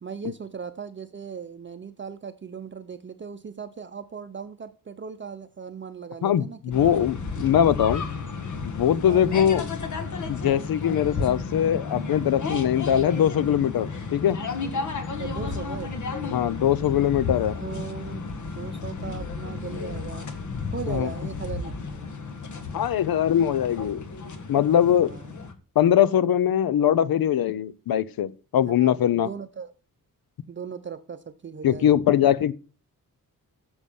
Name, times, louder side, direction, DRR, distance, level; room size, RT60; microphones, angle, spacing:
voice 1, 0.0-7.1 9.1-9.3 15.2-16.0 17.6-20.3 20.7-22.1 25.0-25.3 28.6-29.7 30.5-32.0, right 6 dB, 35° right, 0.6 m, -38 dB
voice 2, 6.2-8.0 8.6-9.6 10.3-14.4 16.3-17.6 20.9-21.1 22.7-24.1 24.5-25.1 25.8-29.3 31.6-32.5, left 10 dB, 90° left, 0.7 m, -22 dB
sound 1, 6.7-25.5, left 4 dB, 55° left, 1.5 m, -33 dB
9.5 x 7.1 x 5.4 m
wide cardioid pair, 150°, 35 cm